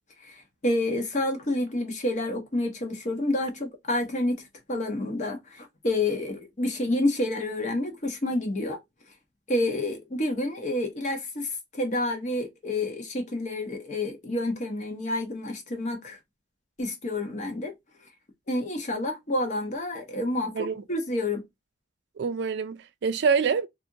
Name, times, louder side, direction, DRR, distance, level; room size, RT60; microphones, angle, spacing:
voice 1, 0.2-4.4 4.7-8.8 9.5-16.2 16.8-17.7 18.5-21.4, left 1 dB, 40° left, 0.8 m, -29 dB
voice 2, 22.2-23.7, right 5 dB, 65° right, 0.3 m, -26 dB
2.7 x 2.5 x 2.5 m
head